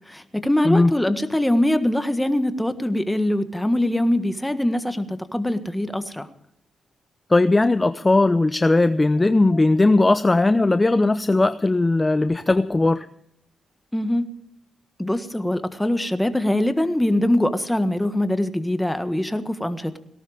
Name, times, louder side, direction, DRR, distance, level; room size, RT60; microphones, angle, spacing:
voice 1, 0.1-6.3 13.9-14.3 15.0-19.9, left 1 dB, 10° left, 10 dB, 1.5 m, -23 dB
voice 2, 7.3-13.1, left 2 dB, 25° left, 12 dB, 0.6 m, -18 dB
18.0 x 12.0 x 5.0 m, 0.75 s
cardioid pair, 65°, 0 cm